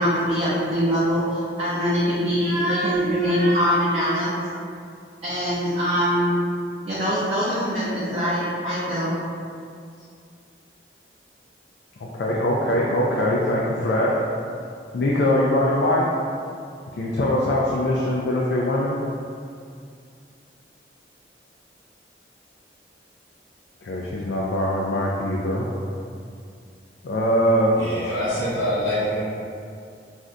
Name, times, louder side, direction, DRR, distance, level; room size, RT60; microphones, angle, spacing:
voice 1, 0.0-4.3 5.2-6.4 6.8-9.2, equal, 35° right, -10 dB, 0.5 m, -23 dB
voice 2, 12.0-14.2 14.9-16.1 16.9-19.0 23.8-25.7 27.0-27.8, left 1 dB, 65° left, -4 dB, 0.3 m, -22 dB
voice 3, 27.8-29.2, equal, 90° left, -11 dB, 0.7 m, -25 dB
2.5 x 2.1 x 3.6 m, 2.3 s
head